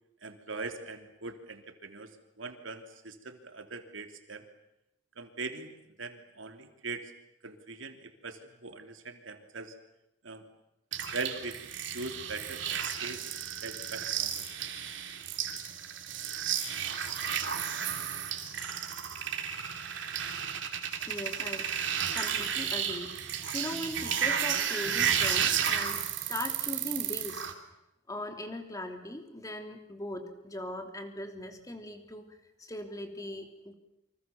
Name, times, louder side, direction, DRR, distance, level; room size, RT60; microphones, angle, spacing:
voice 1, 0.2-4.4 5.2-5.7 6.0-7.1 7.4-9.7 10.2-10.4 11.1-11.6 11.9-13.2 13.6-14.5, right 3 dB, 85° right, 6 dB, 3.1 m, -41 dB
sound 1, 10.9-27.5, right 8 dB, 70° right, 3.1 m, -33 dB
voice 2, 21.0-21.7 22.1-26.0 26.3-27.5 28.1-33.7, left 1 dB, 20° left, 5 dB, 3.1 m, -39 dB
28.5 x 25.5 x 7.2 m, 0.86 s
head